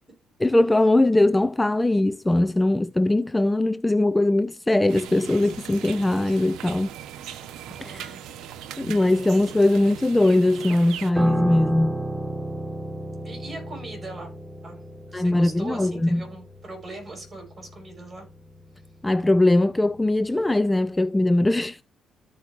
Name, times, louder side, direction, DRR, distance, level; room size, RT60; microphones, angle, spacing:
voice 1, 0.4-6.9 7.8-8.2 8.8-11.9 15.1-16.3 19.0-21.8, left 1 dB, 10° left, 0.4 m, -21 dB
sound 1, 4.9-11.1, right 10 dB, 90° right, 0.8 m, -39 dB
voice 2, 7.7-8.3 13.2-14.3 14.6-14.8 15.1-18.3, right 2 dB, 30° right, 5.5 m, -40 dB
Piano, 11.2-20.5 20.8-21.1, right 1 dB, 5° right, 1.0 m, -34 dB
13.5 x 5.4 x 2.4 m
cardioid pair, 90°, 0 cm